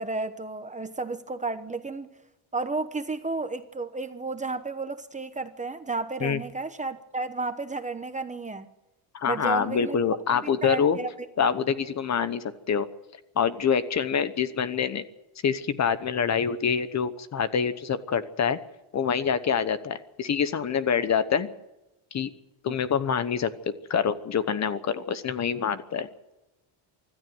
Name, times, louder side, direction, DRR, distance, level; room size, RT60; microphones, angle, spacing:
voice 1, 0.0-2.1 2.5-8.7 9.3-10.0 10.6-11.3 22.7-22.8, right 3 dB, 15° right, 9 dB, 1.0 m, -32 dB
voice 2, 9.1-11.0 11.4-12.9 13.4-15.0 15.4-18.6 18.9-21.5 22.1-22.3 22.6-23.5 23.9-26.1, left 7 dB, 35° left, 13 dB, 1.0 m, -26 dB
25.0 x 14.0 x 7.8 m, 1.0 s
cardioid pair, 165°, 50 cm